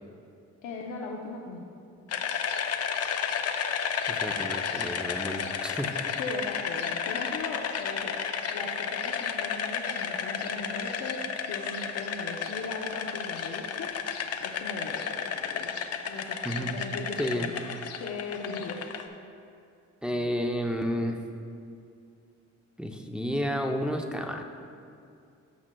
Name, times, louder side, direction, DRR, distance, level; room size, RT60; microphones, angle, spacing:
voice 1, 0.6-1.6 6.2-8.1 8.5-11.2 11.5-13.9 14.4-15.8 16.0-17.6 18.0-18.8, left 3 dB, 85° left, -2 dB, 0.8 m, -38 dB
sound 1, 2.1-19.0, left 7 dB, 55° left, 0.6 m, -32 dB
voice 2, 4.1-5.9 16.4-16.8 17.2-17.5 20.0-21.2 22.8-24.4, equal, 5° right, 2 dB, 0.6 m, -31 dB
15.0 x 6.1 x 2.3 m, 2.5 s
cardioid pair, 90°, 30 cm